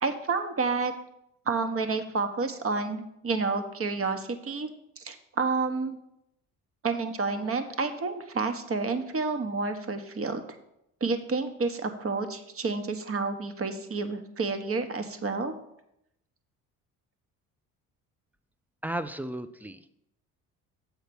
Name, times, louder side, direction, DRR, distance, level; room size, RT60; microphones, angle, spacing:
voice 1, 0.0-0.9 1.5-4.7 5.0-6.0 6.8-10.4 11.0-15.5, right 4 dB, 35° right, 8 dB, 1.2 m, -29 dB
voice 2, 18.8-19.9, right 1 dB, 5° right, 12 dB, 0.5 m, -34 dB
7.8 x 4.6 x 6.9 m, 0.80 s
hypercardioid pair, 55°, 41 cm